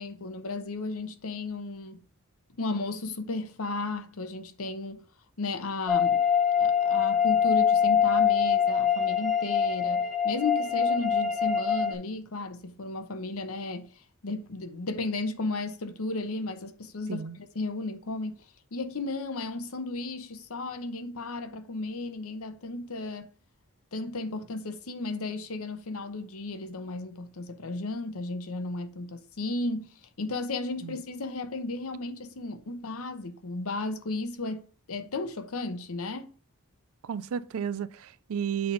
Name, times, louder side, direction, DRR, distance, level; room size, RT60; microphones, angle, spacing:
voice 1, 0.0-2.1 2.6-5.0 5.4-6.3 6.6-18.4 18.7-23.3 23.9-36.3, left 3 dB, 75° left, 0.9 m, -34 dB
sound 1, 5.9-11.9, left 7 dB, ahead, 0.8 m, -24 dB
voice 2, 37.0-38.7, right 7 dB, 75° right, 0.4 m, -32 dB
7.8 x 3.4 x 5.5 m
head